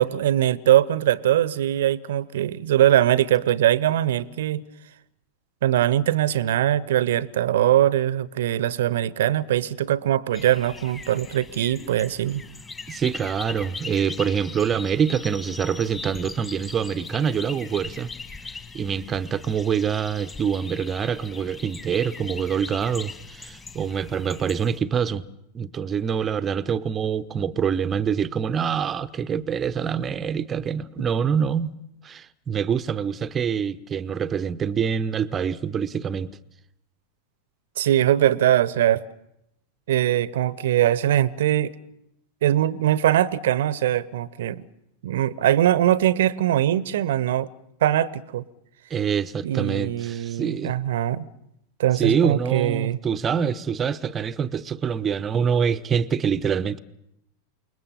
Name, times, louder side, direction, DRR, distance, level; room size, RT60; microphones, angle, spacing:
voice 1, 0.0-4.6 5.6-12.4 31.0-31.1 37.8-39.0 39.9-41.7 42.4-44.7 45.0-47.5 47.8-48.4 49.4-51.3 51.8-53.0, right 12 dB, 60° right, 0.9 m, -21 dB
sound 1, 10.3-24.8, left 4 dB, 15° left, 2.3 m, -40 dB
voice 2, 12.9-18.1 18.5-25.2 25.5-31.7 32.0-36.4 48.9-50.8 52.0-56.8, right 7 dB, 25° right, 0.9 m, -25 dB
28.5 x 20.5 x 7.2 m
figure-of-eight pair, 90°, 0 cm